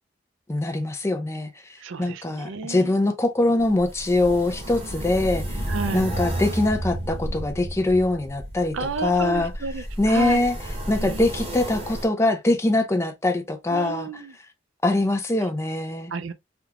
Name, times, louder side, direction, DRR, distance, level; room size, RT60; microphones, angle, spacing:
voice 1, 0.5-1.5 2.0-5.6 5.9-9.5 10.0-10.6 10.9-14.1 14.8-16.1, left 2 dB, 15° left, 0.4 m, -23 dB
voice 2, 1.8-2.9 5.7-6.1 8.7-10.4 11.0-11.3 13.7-14.3 15.3-15.5 16.1-16.3, right 4 dB, 85° right, 0.5 m, -32 dB
sound 1, 3.6-12.1, right 1 dB, 30° right, 1.0 m, -32 dB
3.4 x 2.4 x 2.8 m
head